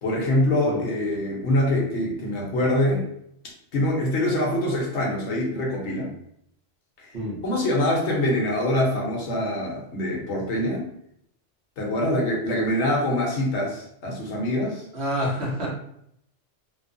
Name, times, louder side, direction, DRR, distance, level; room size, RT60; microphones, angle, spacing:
voice 1, 0.0-3.1 3.7-6.1 7.0-7.1 7.4-10.9 11.8-14.8, left 1 dB, 65° left, -2 dB, 1.0 m, -24 dB
voice 2, 14.9-15.7, equal, 60° right, -4 dB, 1.1 m, -28 dB
3.0 x 2.0 x 2.5 m, 0.72 s
omnidirectional pair, 1.3 m